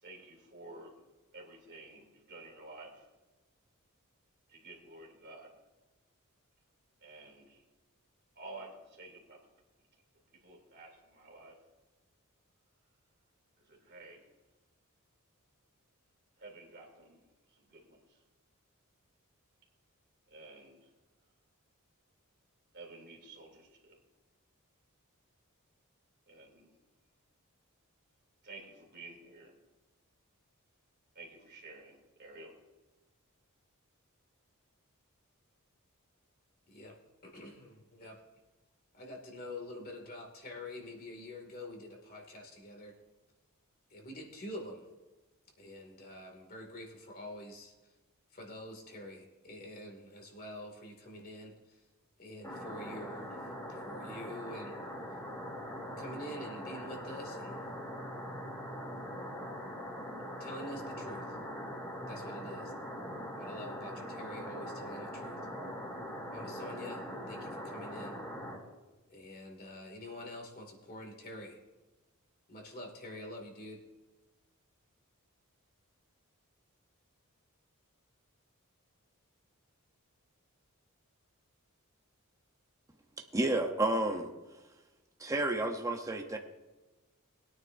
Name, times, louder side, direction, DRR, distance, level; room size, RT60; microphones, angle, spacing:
voice 1, 0.0-1.0 1.3-3.1 4.5-5.5 7.0-7.6 8.3-9.4 10.3-11.6 13.6-14.3 16.4-17.2 17.5-18.2 20.3-20.9 22.7-24.0 26.3-26.7 28.4-29.5 31.1-32.6, right 2 dB, 50° right, 0 dB, 2.8 m, -51 dB
voice 2, 36.7-37.0 37.2-38.2 38.9-43.0 43.9-44.8 45.6-47.7 48.3-51.8 52.2-54.8 56.0-57.6 60.4-61.4 62.1-62.7 63.4-65.4 66.3-68.2 69.1-71.6 72.5-73.8, left 1 dB, 45° left, 1 dB, 2.4 m, -46 dB
sound 1, 52.4-68.6, equal, 15° left, 3.0 m, -42 dB
voice 3, 83.3-84.3 85.2-86.4, right 2 dB, 15° right, 3 dB, 0.8 m, -30 dB
21.0 x 9.6 x 2.7 m, 1.2 s
head